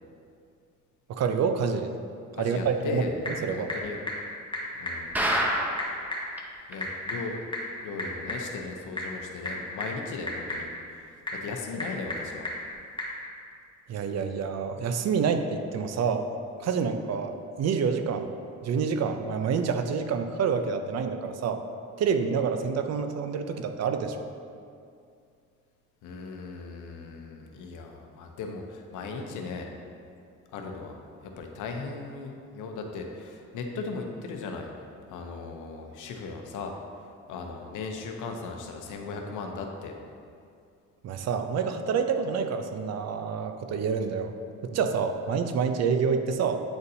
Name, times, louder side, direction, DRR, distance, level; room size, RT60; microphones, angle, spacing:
voice 1, 1.1-1.9 2.4-3.7 13.9-16.3 16.6-18.3 18.6-21.6 22.0-24.2 41.0-44.3 44.6-46.6, right 6 dB, 60° right, 8 dB, 0.5 m, -27 dB
voice 2, 2.3-3.2 3.5-4.1 4.8-5.1 6.7-7.4 7.8-10.7 10.9-12.5 26.0-29.7 30.5-36.7 37.3-40.0, left 4 dB, 85° left, 3 dB, 0.7 m, -37 dB
Typing / Telephone, 2.7-13.2, left 1 dB, 15° left, 1.3 m, -37 dB
sound 1, 5.1-6.0 6.4-6.5 6.7-6.8 7.3-7.4, equal, 5° right, 0.6 m, -26 dB
8.8 x 4.0 x 2.7 m, 2.4 s
cardioid pair, 90°, 30 cm